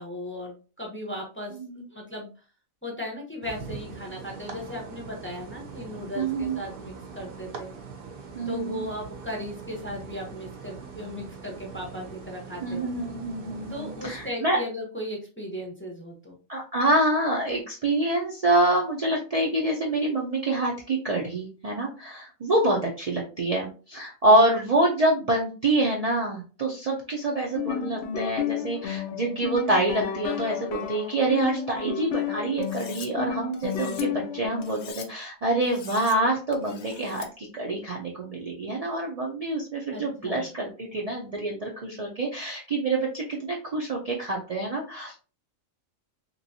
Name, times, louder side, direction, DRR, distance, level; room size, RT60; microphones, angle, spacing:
voice 1, 0.0-1.6 1.9-2.3 2.8-7.7 8.5-12.9 13.7-16.4 39.9-40.5, left 1 dB, 15° left, -1 dB, 0.6 m, -36 dB
sound 1, 3.4-14.3, right 5 dB, 55° right, 0.7 m, -42 dB
voice 2, 6.2-6.6 8.3-8.9 12.6-14.6 16.5-45.3, right 2 dB, 75° right, -1 dB, 0.3 m, -26 dB
sound 2, 27.4-34.9, left 9 dB, 65° left, 0.8 m, -32 dB
Cutlery silverware, 32.6-33.1 33.5-34.0 34.6-35.1 35.6-36.2 36.5-37.3, left 7 dB, 90° left, 0.4 m, -43 dB
3.0 x 3.0 x 2.6 m, 0.35 s
omnidirectional pair, 1.4 m